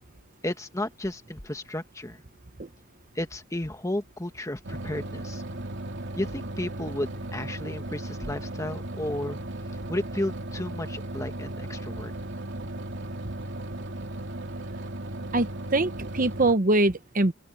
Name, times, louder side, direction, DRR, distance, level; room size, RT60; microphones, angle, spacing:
voice 1, 0.4-2.2 3.1-5.4 6.2-9.4 9.9-12.1, left 1 dB, 15° left, 1.7 m, -33 dB
sound 1, 4.6-16.6, right 1 dB, 60° right, 3.5 m, -36 dB
voice 2, 15.3-17.3, right 2 dB, 40° right, 1.0 m, -23 dB
open air
head